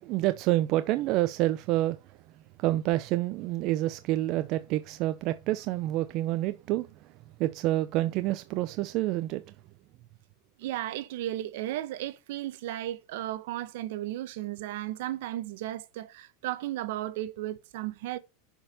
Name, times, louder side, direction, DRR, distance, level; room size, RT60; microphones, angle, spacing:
voice 1, 0.0-2.2 2.6-6.9 7.4-9.4, right 15 dB, 50° right, 0.6 m, -28 dB
voice 2, 10.6-18.2, right 14 dB, 70° right, 1.0 m, -35 dB
7.1 x 5.4 x 5.8 m
supercardioid pair, 135°, 0 cm